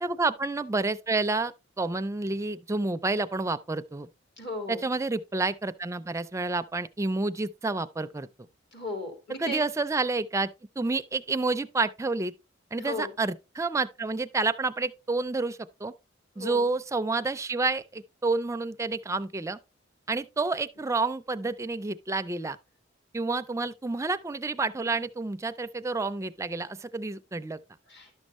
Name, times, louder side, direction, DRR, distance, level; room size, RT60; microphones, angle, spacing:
voice 1, 0.0-4.1 4.7-8.3 9.4-12.3 12.7-15.9 16.4-19.6 20.1-22.6 23.1-27.6, right 3 dB, 15° right, 0.4 m, -29 dB
voice 2, 4.4-4.8 8.7-9.6 12.8-13.1 16.3-16.6 27.9-28.1, left 2 dB, 60° left, 3.3 m, -35 dB
11.5 x 6.3 x 3.0 m
head